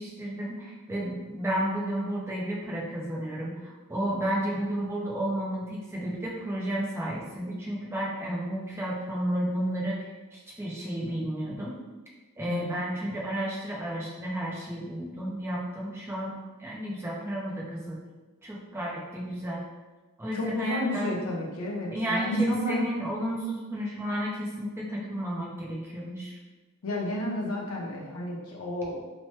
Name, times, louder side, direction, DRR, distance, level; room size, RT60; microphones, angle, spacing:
voice 1, 0.0-11.8 12.4-16.3 16.6-18.0 18.4-19.6 20.2-21.1 21.9-26.3, right 1 dB, 10° right, -4 dB, 0.4 m, -32 dB
voice 2, 12.5-12.8 20.3-22.8 26.8-29.0, left 1 dB, 75° left, -3 dB, 0.7 m, -31 dB
3.1 x 2.0 x 3.0 m, 1.2 s
head